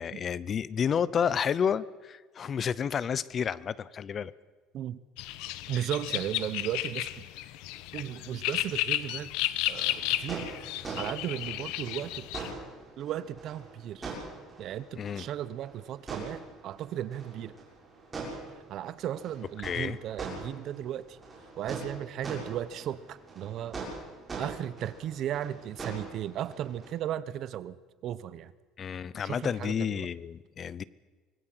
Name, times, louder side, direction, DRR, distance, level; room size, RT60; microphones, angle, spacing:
voice 1, 0.0-4.3 5.7-5.9 15.0-15.2 19.6-20.0 28.8-30.8, left 7 dB, 30° left, 20 dB, 0.6 m, -30 dB
sound 1, 5.2-12.5, left 15 dB, 70° left, 1.0 m, -33 dB
voice 2, 5.7-7.3 7.9-9.3 9.7-10.5 11.0-12.3 13.0-14.2 14.6-17.5 18.7-21.2 21.6-23.8 24.4-28.5 29.2-30.1, right 11 dB, 45° right, 16 dB, 0.9 m, -35 dB
sound 2, 9.7-26.9, right 3 dB, 15° right, 6.8 m, -43 dB
25.0 x 19.0 x 7.7 m, 1.4 s
cardioid pair, 165°, 0 cm